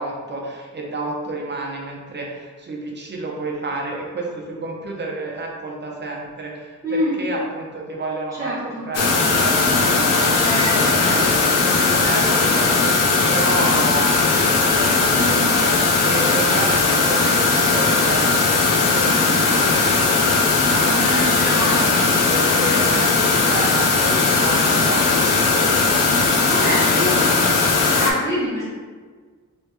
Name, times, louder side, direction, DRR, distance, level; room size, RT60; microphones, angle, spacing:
voice 1, 0.0-11.4 11.7-21.9 22.2-26.9 27.3-27.7, right 2 dB, 35° right, -1 dB, 0.6 m, -30 dB
voice 2, 6.8-7.2 8.4-8.8 10.4-11.2 15.1-15.5 20.9-22.9 26.5-27.3 28.0-28.6, left 1 dB, 10° right, -13 dB, 0.9 m, -26 dB
sound 1, 8.9-28.1, left 4 dB, 85° left, 0.6 m, -18 dB
3.3 x 3.1 x 3.2 m, 1.5 s
wide cardioid pair, 140°, 32 cm